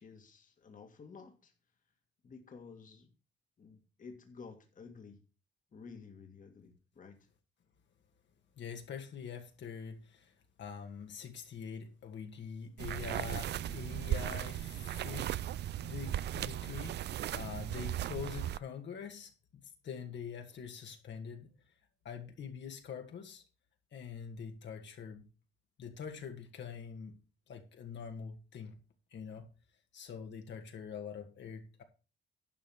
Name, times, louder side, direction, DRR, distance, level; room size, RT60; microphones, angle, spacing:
voice 1, 0.0-1.5 2.2-3.1 3.6-5.2 5.7-7.2, left 5 dB, 40° left, 2.0 m, -52 dB
voice 2, 8.6-10.3 10.6-15.4 15.8-17.0 17.3-21.5 22.0-23.4 23.9-25.2 25.8-27.1 27.5-28.7 29.1-29.5 29.9-31.8, left 7 dB, 65° left, 2.2 m, -44 dB
sound 1, 12.8-18.6, right 12 dB, 60° right, 0.4 m, -37 dB
11.5 x 5.2 x 6.3 m
cardioid pair, 90°, 20 cm